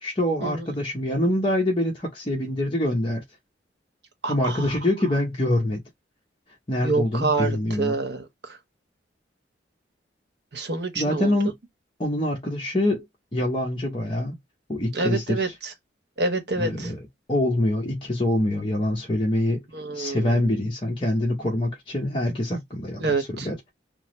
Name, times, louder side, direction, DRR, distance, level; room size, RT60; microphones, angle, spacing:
voice 1, 0.0-3.2 4.3-5.8 6.7-7.9 11.0-11.5 12.0-13.0 13.3-14.4 14.7-15.4 16.6-17.0 17.3-19.6 19.9-23.7, left 1 dB, 30° left, 0.8 m, -25 dB
voice 2, 4.2-4.8 6.8-8.6 10.5-11.4 14.9-15.7 16.2-16.9 19.7-20.6 23.0-23.5, right 3 dB, 65° right, 1.0 m, -27 dB
3.4 x 2.0 x 2.9 m
head